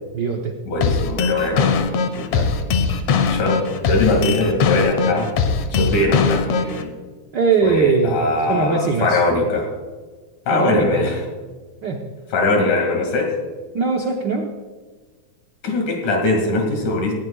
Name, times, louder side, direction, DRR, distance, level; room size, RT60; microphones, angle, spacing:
voice 1, 0.1-0.6 2.3-2.5 7.3-8.1 8.5-9.2 10.5-11.1 11.8-12.0 13.7-14.5, right 5 dB, 75° right, 2 dB, 1.0 m, -20 dB
voice 2, 0.7-1.8 2.1-2.5 3.3-5.3 5.7-6.9 7.6-9.7 10.5-11.2 12.3-13.3 15.6-17.1, left 2 dB, 85° left, 1 dB, 3.7 m, -21 dB
sound 1, 0.8-6.8, left 5 dB, 70° left, 2.1 m, -20 dB
18.5 x 16.5 x 2.3 m, 1.4 s
omnidirectional pair, 3.4 m